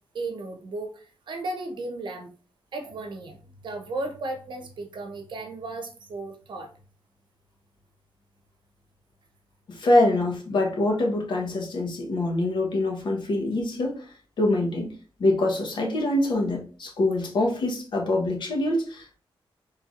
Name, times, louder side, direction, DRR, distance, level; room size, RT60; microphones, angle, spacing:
voice 1, 0.1-2.3 2.7-6.7, right 2 dB, 60° right, 4 dB, 0.9 m, -35 dB
voice 2, 9.7-14.0 14.4-14.9 15.2-19.2, left 2 dB, 60° left, 1 dB, 1.2 m, -24 dB
4.5 x 3.4 x 2.5 m, 0.38 s
wide cardioid pair, 145°, 9 cm